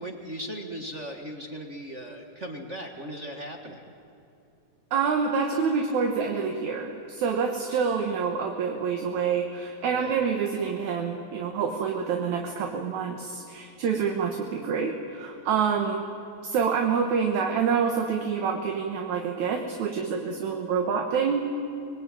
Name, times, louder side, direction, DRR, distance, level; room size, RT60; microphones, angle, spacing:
voice 1, 0.0-3.8 9.8-10.2, equal, 40° right, 2 dB, 0.9 m, -38 dB
voice 2, 4.9-16.0 16.4-21.4, right 6 dB, 60° right, 3 dB, 2.6 m, -27 dB
25.5 x 20.0 x 9.0 m, 2.7 s
omnidirectional pair, 4.0 m